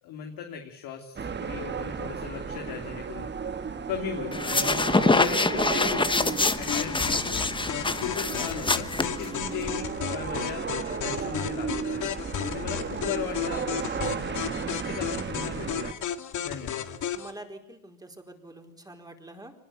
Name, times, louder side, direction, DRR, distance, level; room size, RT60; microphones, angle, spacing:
voice 1, 0.0-3.3 3.9-7.4 7.8-10.6 11.0-12.1 12.5-15.9 16.4-16.9, left 7 dB, 75° left, 2 dB, 3.2 m, -37 dB
sound 1, 1.2-15.9, right 6 dB, 30° right, 1.6 m, -34 dB
sound 2, 4.3-9.7, left 3 dB, 15° left, 1.2 m, -25 dB
sound 3, 6.7-17.3, left 9 dB, 60° left, 2.1 m, -34 dB
voice 2, 17.1-19.5, right 1 dB, 10° right, 4 dB, 4.5 m, -45 dB
24.5 x 20.0 x 9.1 m, 0.78 s
cardioid pair, 105°, 34 cm